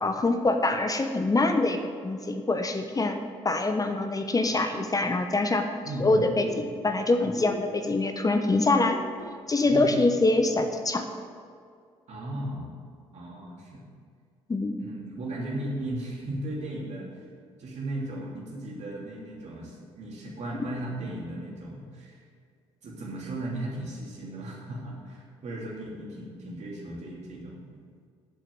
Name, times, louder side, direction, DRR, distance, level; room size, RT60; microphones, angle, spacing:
voice 1, 0.0-1.8 2.0-3.2 3.4-5.6 6.0-9.0 9.5-11.0 14.5-14.8, left 2 dB, 25° left, 6 dB, 1.0 m, -24 dB
voice 2, 5.8-6.6 7.2-7.4 9.6-10.1 12.1-12.7 13.1-13.8 14.8-17.1 17.6-22.2 22.8-27.6, right 1 dB, 50° right, -3 dB, 3.1 m, -36 dB
sound 1, 6.0-9.2, left 3 dB, 70° left, 1.8 m, -45 dB
8.0 x 7.7 x 7.9 m, 2.1 s
hypercardioid pair, 45°, 14 cm